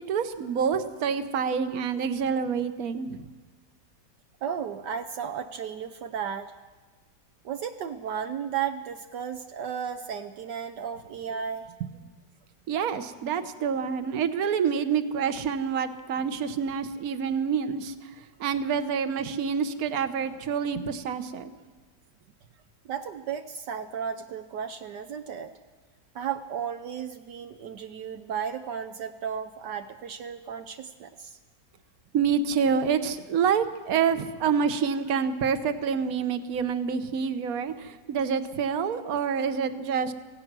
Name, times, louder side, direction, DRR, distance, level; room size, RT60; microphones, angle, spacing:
voice 1, 0.1-3.2 12.7-17.9 18.4-21.5 32.1-40.1, right 6 dB, 60° right, 10 dB, 1.4 m, -27 dB
voice 2, 4.4-6.5 7.4-11.7 22.8-25.5 26.1-31.4, right 8 dB, 75° right, 6 dB, 1.4 m, -34 dB
26.0 x 17.0 x 6.1 m, 1.3 s
omnidirectional pair, 1.9 m